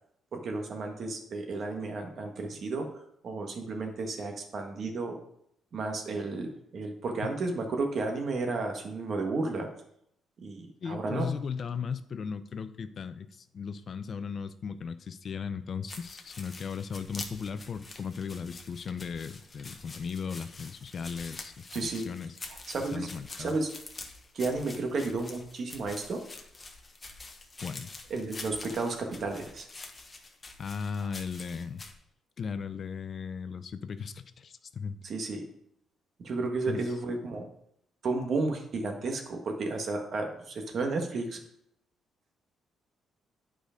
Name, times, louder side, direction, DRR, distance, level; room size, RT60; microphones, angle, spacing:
voice 1, 0.3-2.9 3.2-5.2 5.7-9.7 10.4-11.3 21.7-22.1 22.7-23.1 23.4-23.7 24.3-26.2 28.1-29.7 35.0-35.4 36.2-37.5 38.0-41.4, right 3 dB, 55° right, 3 dB, 1.6 m, -32 dB
voice 2, 10.8-21.7 21.9-22.4 22.9-23.5 27.6-27.9 30.6-31.8 32.4-35.0 36.7-36.8, left 6 dB, 50° left, 12 dB, 0.5 m, -37 dB
sound 1, 15.9-31.9, left 3 dB, 30° left, 1.2 m, -46 dB
9.0 x 4.9 x 5.1 m, 0.74 s
cardioid pair, 90°, 0 cm